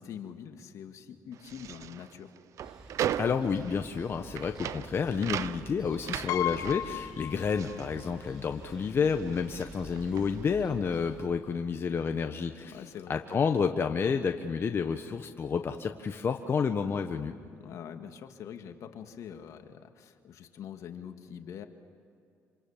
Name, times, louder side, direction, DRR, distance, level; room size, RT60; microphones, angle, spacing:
voice 1, 0.0-2.3 12.7-13.2 17.6-21.7, left 8 dB, 70° left, 6 dB, 2.1 m, -44 dB
sound 1, 1.3-8.8 9.1-10.6, right 10 dB, 65° right, 0.7 m, -38 dB
sound 2, 2.6-11.3, right 2 dB, 10° right, 5.8 m, -50 dB
voice 2, 3.2-12.8 13.1-17.3, left 6 dB, 45° left, 6 dB, 1.3 m, -30 dB
Piano, 6.3-8.1 8.4-8.5 9.7-9.8 10.1-10.3, left 13 dB, 85° left, 0.9 m, -35 dB
27.0 x 27.0 x 7.5 m, 2.4 s
supercardioid pair, 75°, 6 cm